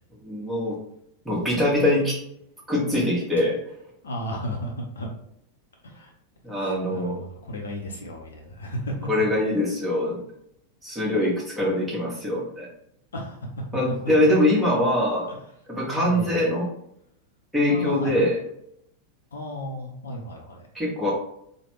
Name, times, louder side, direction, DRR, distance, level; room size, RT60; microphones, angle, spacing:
voice 1, 0.2-0.8 1.2-2.2 2.7-3.6 6.4-7.2 9.1-10.2 10.8-12.7 13.7-15.3 15.7-16.7 17.5-18.4 20.7-21.1, left 1 dB, 5° right, -5 dB, 1.2 m, -23 dB
voice 2, 4.0-5.1 5.8-6.1 6.5-9.1 13.1-13.4 15.3-15.4 15.9-16.4 17.7-18.2 19.3-20.7, equal, 70° left, 1 dB, 0.6 m, -34 dB
3.2 x 2.1 x 2.9 m, 0.72 s
figure-of-eight pair, 90°, 0 cm